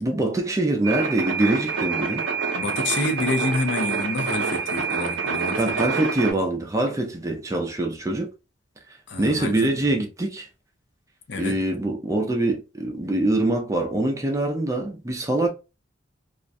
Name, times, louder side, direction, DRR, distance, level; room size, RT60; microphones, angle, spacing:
voice 1, 0.0-2.2 5.6-8.3 9.2-10.5 11.4-15.5, right 2 dB, 15° right, 0.4 m, -24 dB
sound 1, 0.8-6.3, right 5 dB, 75° right, 0.6 m, -27 dB
voice 2, 2.5-5.8 9.1-9.9 11.3-11.6, left 2 dB, 60° left, 0.6 m, -28 dB
2.4 x 2.1 x 2.5 m
head